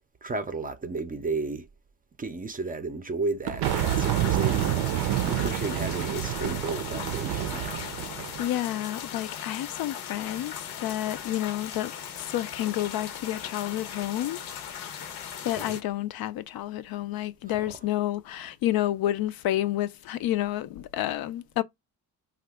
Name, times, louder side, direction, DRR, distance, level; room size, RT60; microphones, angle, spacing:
voice 1, 0.2-1.7 2.2-4.9 5.2-7.9 15.5-15.8 17.5-17.7, right 3 dB, 20° right, 0.4 m, -33 dB
sound 1, 3.5-8.5, right 13 dB, 80° right, 0.5 m, -28 dB
sound 2, 3.6-15.8, left 8 dB, 85° left, 0.8 m, -38 dB
voice 2, 8.4-15.1 15.4-21.6, left 13 dB, 65° left, 0.5 m, -30 dB
2.8 x 2.3 x 3.4 m
cardioid pair, 120°, 39 cm